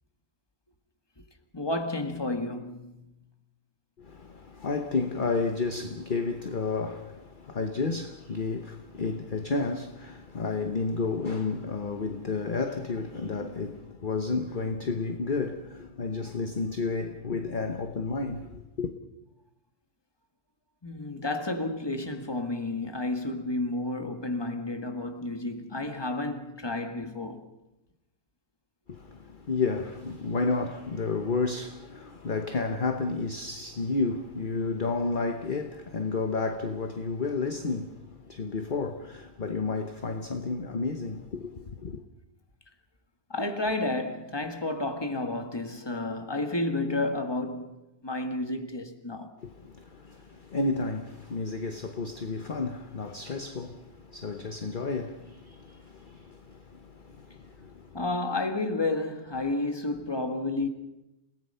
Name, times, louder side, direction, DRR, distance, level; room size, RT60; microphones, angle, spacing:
voice 1, 1.5-3.0 20.8-27.5 43.3-49.3 57.9-60.7, left 2 dB, 15° left, 1.7 m, -31 dB
voice 2, 4.0-18.9 28.9-42.0 49.4-58.0, left 4 dB, 40° left, 1.1 m, -31 dB
29.0 x 18.0 x 5.7 m
omnidirectional pair, 1.5 m